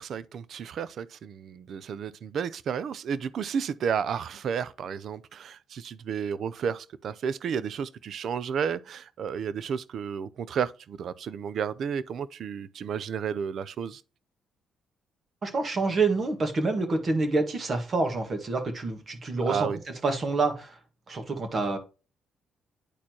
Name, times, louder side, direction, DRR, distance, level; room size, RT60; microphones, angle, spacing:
voice 1, 0.0-14.0 19.5-19.8, right 7 dB, 65° right, 0.5 m, -32 dB
voice 2, 15.4-19.7 20.0-20.8 21.1-21.8, right 3 dB, 40° right, 1.7 m, -27 dB
9.9 x 4.3 x 2.9 m
cardioid pair, 90°, 0 cm